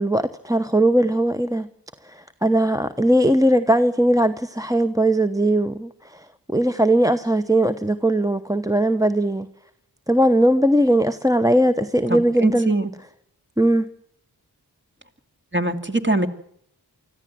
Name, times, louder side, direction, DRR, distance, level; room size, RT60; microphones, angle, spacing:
voice 1, 0.0-1.7 2.0-9.5 10.1-12.7 13.6-13.9, right 1 dB, 10° right, 9 dB, 1.0 m, -19 dB
voice 2, 12.1-12.9 15.5-16.3, right 2 dB, 25° right, 6 dB, 2.7 m, -22 dB
25.0 x 15.0 x 7.7 m, 0.67 s
wide cardioid pair, 40°, 41 cm